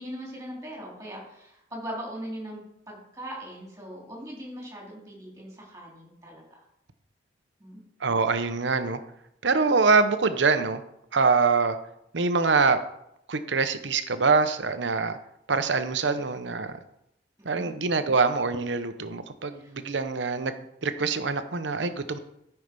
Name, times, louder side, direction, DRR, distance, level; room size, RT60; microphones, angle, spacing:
voice 1, 0.0-6.6 7.6-7.8 17.5-17.7 19.5-19.8, equal, 15° right, -2 dB, 3.5 m, -40 dB
voice 2, 8.0-9.0 9.4-10.8 11.1-11.8 12.1-12.8 13.3-15.2 15.5-16.8 17.4-22.2, right 4 dB, 85° right, 10 dB, 0.9 m, -24 dB
12.5 x 5.8 x 5.3 m, 0.79 s
head